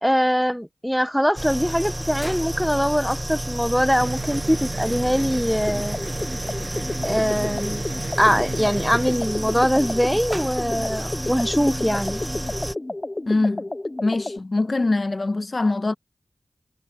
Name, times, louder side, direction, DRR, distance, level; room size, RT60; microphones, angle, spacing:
voice 1, 0.0-6.0 7.0-7.8 8.2-12.2, equal, ahead, 1.0 m, -22 dB
sound 1, 1.4-12.8, right 1 dB, 15° right, 1.6 m, -30 dB
sound 2, 4.0-9.1, right 4 dB, 80° right, 7.9 m, -35 dB
sound 3, 5.7-14.4, left 2 dB, 35° left, 0.6 m, -31 dB
voice 2, 13.3-13.7 14.0-15.9, left 2 dB, 55° left, 1.4 m, -23 dB
wide cardioid pair, 50°, 0 cm